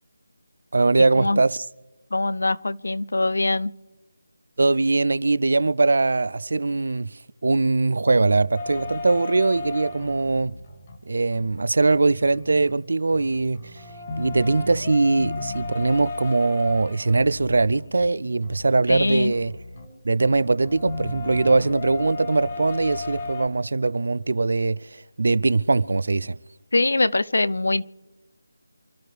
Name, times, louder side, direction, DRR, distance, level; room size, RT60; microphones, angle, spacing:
voice 1, 0.7-1.6 4.6-7.1 7.4-10.5 11.1-13.8 14.2-19.5 20.0-26.4, right 3 dB, 60° right, 0.5 m, -21 dB
voice 2, 2.1-3.7 18.9-19.3 26.7-27.8, left 2 dB, 70° left, 0.5 m, -23 dB
sound 1, 8.5-11.0 11.3-12.7 13.1-23.5, left 3 dB, 30° left, 1.9 m, -35 dB
28.0 x 12.0 x 3.3 m
figure-of-eight pair, 170°, 0 cm